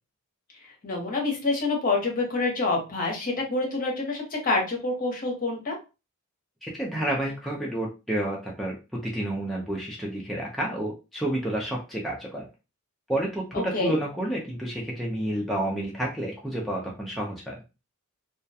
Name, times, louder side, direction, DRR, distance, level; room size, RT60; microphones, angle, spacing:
voice 1, 0.8-5.8 13.5-14.0, left 3 dB, 40° left, 0 dB, 0.8 m, -27 dB
voice 2, 6.6-8.8 9.0-12.5 13.1-17.6, right 1 dB, ahead, -3 dB, 0.4 m, -30 dB
2.3 x 2.1 x 2.6 m, 0.29 s
head